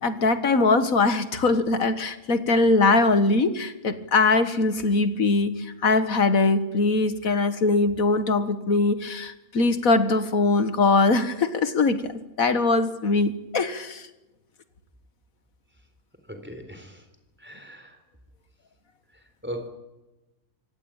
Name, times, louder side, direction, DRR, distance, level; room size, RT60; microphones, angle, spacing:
voice 1, 0.0-12.1 12.4-14.0, left 3 dB, 70° left, 11 dB, 2.0 m, -22 dB
voice 2, 16.3-17.0 17.4-18.0 19.4-19.7, equal, 5° right, 6 dB, 3.8 m, -38 dB
25.0 x 17.5 x 9.0 m, 1.0 s
omnidirectional pair, 1.5 m